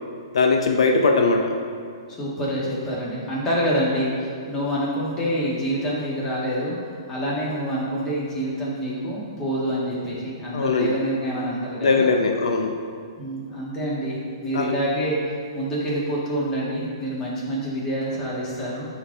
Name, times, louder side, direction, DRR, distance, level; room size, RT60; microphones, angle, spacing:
voice 1, 0.3-1.5 10.5-10.9 11.8-12.8 14.5-14.7, left 4 dB, 75° left, 3 dB, 0.6 m, -20 dB
voice 2, 2.1-6.8 7.1-12.0 13.2-18.9, equal, 15° left, -6 dB, 1.7 m, -27 dB
9.7 x 3.9 x 3.9 m, 2.3 s
hypercardioid pair, 155°, 3 cm